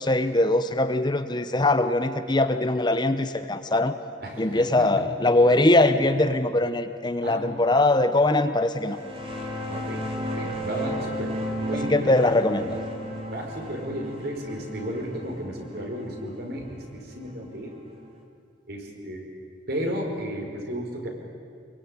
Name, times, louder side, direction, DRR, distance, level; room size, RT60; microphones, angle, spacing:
voice 1, 0.0-3.9 4.4-9.0 11.9-12.8, left 2 dB, 25° left, 10 dB, 0.9 m, -22 dB
voice 2, 4.2-4.9 5.3-5.6 5.9-6.1 7.2-7.5 9.7-10.1 10.3-12.1 13.3-17.7 18.7-19.3 19.7-21.1, equal, 55° right, 2 dB, 5.1 m, -33 dB
sound 1, 8.8-18.1, equal, 30° right, 3.5 m, -34 dB
26.5 x 22.5 x 9.8 m, 2.3 s
head